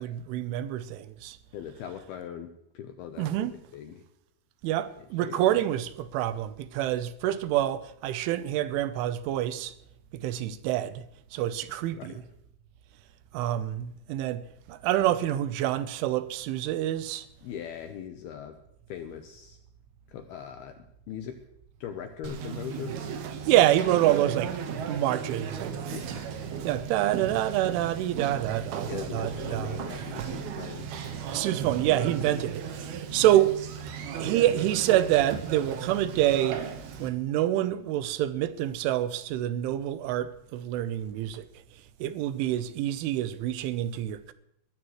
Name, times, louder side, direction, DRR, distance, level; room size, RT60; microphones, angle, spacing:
voice 1, 0.0-1.4 3.2-3.6 4.6-9.7 10.1-11.1 11.3-12.1 13.3-14.4 14.7-17.3 23.4-24.5 24.9-25.7 26.6-29.8 30.2-30.3 31.3-33.5 34.2-36.6 37.0-41.5 42.0-44.3, right 13 dB, 90° right, 3.3 m, -27 dB
voice 2, 1.5-4.0 5.0-5.4 11.9-12.2 17.4-18.6 18.9-19.6 20.1-21.4 21.8-23.0 25.9-26.2 28.9-30.9, left 9 dB, 80° left, 2.3 m, -40 dB
Conversation, 22.2-37.1, right 7 dB, 65° right, 2.9 m, -36 dB
22.0 x 13.5 x 3.2 m
omnidirectional pair, 5.5 m